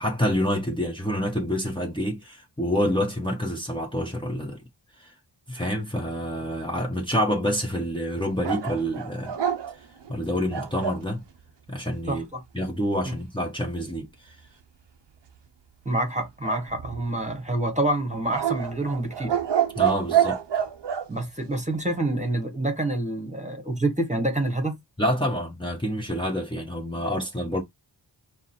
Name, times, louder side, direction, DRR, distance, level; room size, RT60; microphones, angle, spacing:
voice 1, 0.0-4.6 5.0-5.1 5.5-9.3 10.1-11.2 11.7-12.2 12.5-14.3 19.8-20.4 25.0-27.6, equal, 10° left, 1.1 m, -27 dB
sound 1, 8.4-11.1 16.4-17.3 18.3-21.1, right 10 dB, 85° right, 0.8 m, -27 dB
voice 2, 12.1-12.4 13.0-13.2 15.8-19.4 21.1-24.8, right 1 dB, 15° right, 1.3 m, -27 dB
4.7 x 2.1 x 4.3 m
wide cardioid pair, 75°, 42 cm